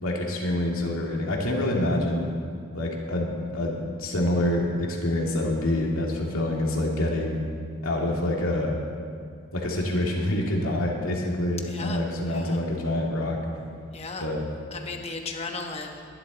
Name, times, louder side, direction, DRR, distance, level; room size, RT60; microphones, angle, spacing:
voice 1, 0.0-2.3 2.7-7.4 7.8-8.8 9.5-13.4 14.2-14.4, left 1 dB, 75° left, -1 dB, 2.4 m, -26 dB
voice 2, 11.7-12.0 12.3-12.6 13.9-14.2 14.7-16.1, left 3 dB, 30° left, 3 dB, 1.1 m, -35 dB
21.0 x 11.5 x 4.0 m, 2.2 s
head